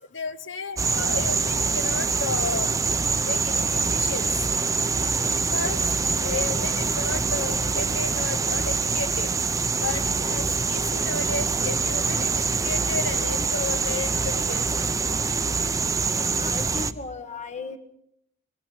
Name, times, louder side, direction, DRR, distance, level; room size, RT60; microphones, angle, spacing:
voice 1, 0.1-2.8 3.2-4.3 5.3-5.9 6.1-9.3 9.8-15.0, left 4 dB, 65° left, 10 dB, 1.4 m, -33 dB
sound 1, 0.8-16.9, right 4 dB, 15° right, 0.7 m, -25 dB
voice 2, 16.1-17.8, left 4 dB, 35° left, 7 dB, 1.3 m, -37 dB
25.0 x 21.0 x 6.1 m, 0.76 s
head